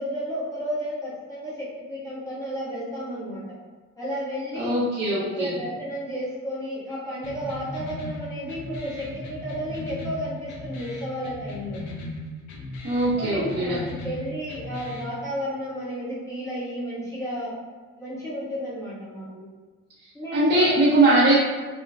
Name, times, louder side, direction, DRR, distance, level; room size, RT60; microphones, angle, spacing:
voice 1, 0.0-3.4 4.0-4.7 5.2-11.8 13.2-17.5 18.0-19.4 20.1-20.9, equal, 10° left, -9 dB, 1.2 m, -32 dB
voice 2, 4.6-5.5 12.8-13.8 20.3-21.4, right 2 dB, 35° right, -9 dB, 0.7 m, -20 dB
sound 1, 7.2-15.2, left 2 dB, 75° left, 0.6 m, -37 dB
3.0 x 2.3 x 2.2 m, 1.4 s
cardioid pair, 90°, 30 cm